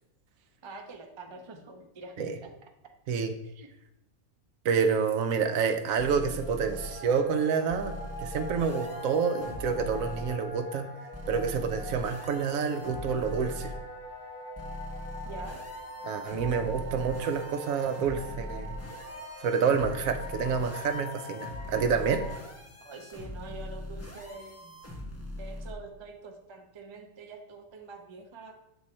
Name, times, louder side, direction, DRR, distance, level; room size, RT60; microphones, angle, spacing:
voice 1, 0.6-2.5 3.4-3.7 15.2-15.6 22.8-24.6 25.4-28.5, right 3 dB, 45° right, 3 dB, 0.3 m, -45 dB
voice 2, 4.6-10.9 11.3-13.7 16.0-18.8 19.4-22.2, right 6 dB, 70° right, 7 dB, 1.0 m, -28 dB
sound 1, 5.9-22.4, left 1 dB, 35° left, 1.5 m, -43 dB
sound 2, 6.0-6.9 7.7-10.3 11.1-13.8 14.6-25.7, left 1 dB, 15° left, 0.7 m, -41 dB
7.6 x 3.4 x 4.2 m, 0.85 s
omnidirectional pair, 1.6 m